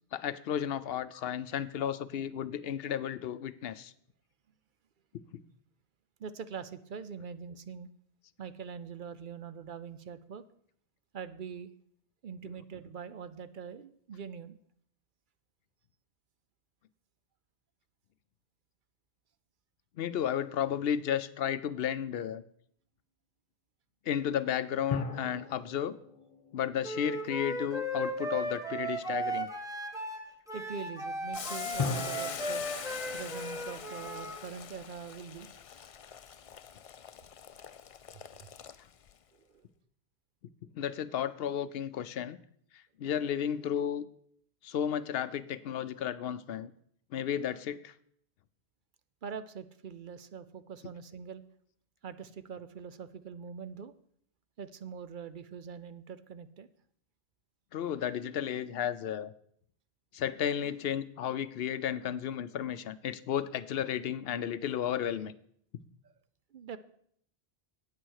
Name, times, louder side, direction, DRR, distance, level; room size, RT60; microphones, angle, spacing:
voice 1, 0.1-3.9 5.1-5.4 12.5-12.6 20.0-22.4 24.1-26.0 26.5-29.5 40.7-42.4 42.7-44.1 44.6-46.7 47.1-47.9 57.7-59.3 60.1-65.3, left 9 dB, 75° left, 15 dB, 0.8 m, -33 dB
voice 2, 6.2-7.9 8.4-10.4 11.1-11.7 12.2-14.6 30.5-32.6 33.1-35.5 39.3-39.6 49.2-51.4 52.0-53.9 54.6-56.7 66.5-66.8, right 6 dB, 60° right, 13 dB, 0.7 m, -43 dB
sound 1, 24.9-27.7 31.8-35.0, left 4 dB, 35° left, 1.3 m, -40 dB
Wind instrument woodwind instrument, 26.8-34.4, right 1 dB, 5° right, 1.3 m, -36 dB
Boiling, 31.3-39.1, left 8 dB, 50° left, 0.4 m, -44 dB
9.1 x 8.8 x 6.4 m, 0.66 s
omnidirectional pair, 1.0 m